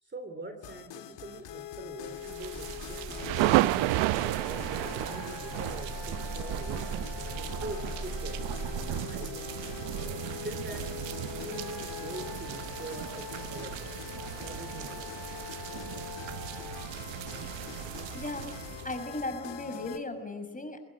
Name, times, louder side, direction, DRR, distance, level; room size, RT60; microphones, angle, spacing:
voice 1, 0.0-3.2 3.5-8.4 8.8-9.6 10.2-10.9 11.3-14.0 14.4-15.2, right 2 dB, 25° right, 7 dB, 3.3 m, -44 dB
sound 1, 0.6-20.0, left 10 dB, 60° left, 2.0 m, -42 dB
sound 2, 1.7-9.0, right 3 dB, 45° right, 3.5 m, -41 dB
sound 3, 2.2-19.2, right 18 dB, 70° right, 0.8 m, -34 dB
voice 2, 18.1-18.6 18.8-20.8, left 2 dB, 15° left, 7 dB, 6.2 m, -36 dB
25.0 x 21.0 x 7.7 m, 1.3 s
hypercardioid pair, 60°, 48 cm